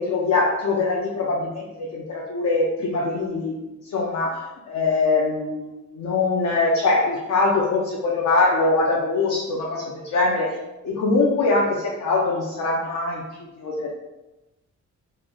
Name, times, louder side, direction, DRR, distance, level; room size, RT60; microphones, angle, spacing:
voice 1, 0.0-3.5 3.8-4.4 4.7-10.6 10.8-13.2 13.6-13.9, left 3 dB, 65° left, -4 dB, 0.7 m, -22 dB
3.2 x 2.5 x 3.8 m, 1.0 s
wide cardioid pair, 150°, 30 cm